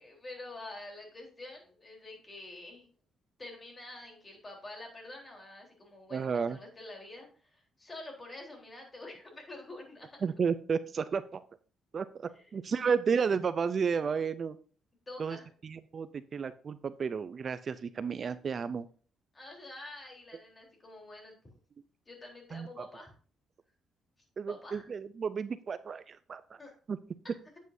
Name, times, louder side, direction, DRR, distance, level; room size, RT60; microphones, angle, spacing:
voice 1, 0.0-2.9 3.4-10.1 12.3-12.6 15.1-15.5 19.3-21.4 22.1-23.1 24.5-24.9 26.6-26.7, left 2 dB, 25° left, 1 dB, 3.6 m, -47 dB
voice 2, 6.1-6.6 10.2-11.4 11.9-14.6 15.2-15.4 15.6-18.9 22.5-22.7 24.4-26.4 26.9-27.0, right 6 dB, 45° right, 13 dB, 0.4 m, -32 dB
9.1 x 8.2 x 2.7 m, 0.41 s
cardioid pair, 90°, 0 cm